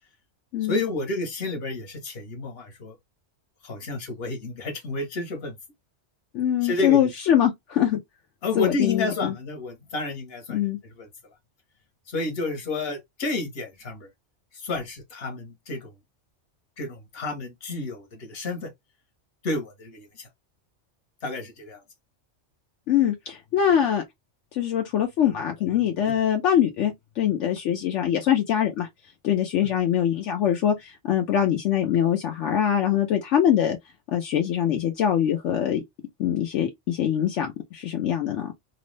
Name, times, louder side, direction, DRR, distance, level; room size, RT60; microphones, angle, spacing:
voice 1, 0.7-3.0 3.6-5.6 6.6-7.1 8.4-10.7 11.0-11.1 12.1-14.1 14.5-15.9 16.8-18.7 19.4-20.3 21.2-21.8 26.0-26.2 29.6-29.7, left 3 dB, 55° left, 1.2 m, -30 dB
voice 2, 6.3-8.0 8.6-9.3 10.5-10.8 22.9-24.0 24.5-28.9 29.2-33.8 34.1-35.8 36.2-38.5, left 10 dB, 80° left, 0.9 m, -23 dB
2.9 x 2.0 x 3.1 m
omnidirectional pair, 1.2 m